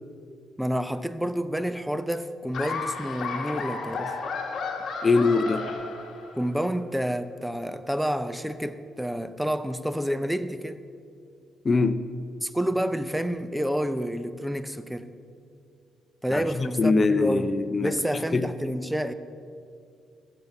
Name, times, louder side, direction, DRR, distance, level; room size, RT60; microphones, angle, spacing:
voice 1, 0.6-4.2 6.3-10.8 12.4-15.1 16.2-17.5 17.8-19.1, equal, 5° right, 0.6 m, -29 dB
Laughter, 2.5-6.6, left 4 dB, 60° left, 1.7 m, -33 dB
voice 2, 5.0-5.7 11.6-12.0 16.3-18.5, left 3 dB, 35° left, 0.7 m, -23 dB
14.5 x 7.4 x 6.7 m
cardioid pair, 90°, 0 cm